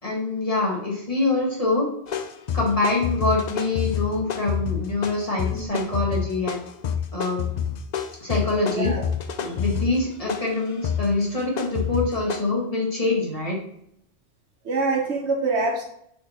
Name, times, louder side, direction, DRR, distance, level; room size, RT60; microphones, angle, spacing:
voice 1, 0.0-1.9 2.5-6.6 7.1-7.4 8.2-8.9 9.4-13.6, left 2 dB, 35° left, -3 dB, 1.7 m, -25 dB
sound 1, 2.1-12.4, left 8 dB, 55° left, 0.5 m, -28 dB
voice 2, 5.4-6.2 8.7-9.0 9.5-9.6 14.6-15.8, right 3 dB, 90° right, 2 dB, 1.3 m, -26 dB
8.3 x 4.3 x 3.0 m, 0.73 s
omnidirectional pair, 1.1 m